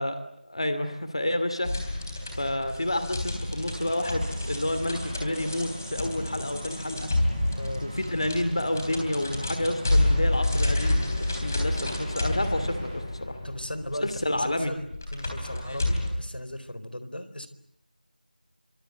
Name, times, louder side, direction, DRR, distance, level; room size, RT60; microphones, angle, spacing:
voice 1, 0.0-1.7 2.3-7.1 7.8-11.0 11.3-13.4 14.0-14.7 15.7-15.8, left 1 dB, 35° left, 10 dB, 2.5 m, -29 dB
sound 1, 1.6-16.1, left 1 dB, 20° left, 3.5 m, -29 dB
sound 2, 3.6-13.0, right 1 dB, 10° right, 2.2 m, -43 dB
voice 2, 7.6-7.9 13.4-14.8 15.1-17.5, left 1 dB, 90° left, 12 dB, 4.2 m, -37 dB
26.5 x 25.5 x 8.2 m, 0.75 s
figure-of-eight pair, 180°, 5 cm